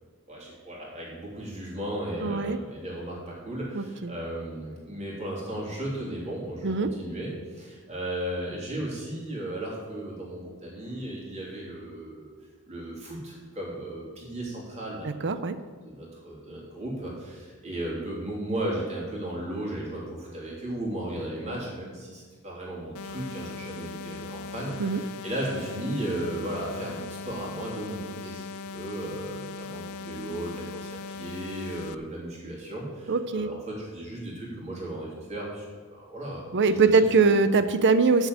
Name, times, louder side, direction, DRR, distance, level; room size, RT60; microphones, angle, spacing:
voice 1, 0.3-12.3 12.7-15.1 15.6-37.3, right 1 dB, 30° right, -4 dB, 3.3 m, -35 dB
voice 2, 2.2-2.6 3.7-4.1 6.6-6.9 15.2-15.5 24.8-25.0 33.1-33.5 36.5-38.3, right 4 dB, 55° right, 11 dB, 0.7 m, -22 dB
sound 1, 22.9-31.9, left 4 dB, 70° left, 0.5 m, -39 dB
7.3 x 7.2 x 8.0 m, 1.5 s
head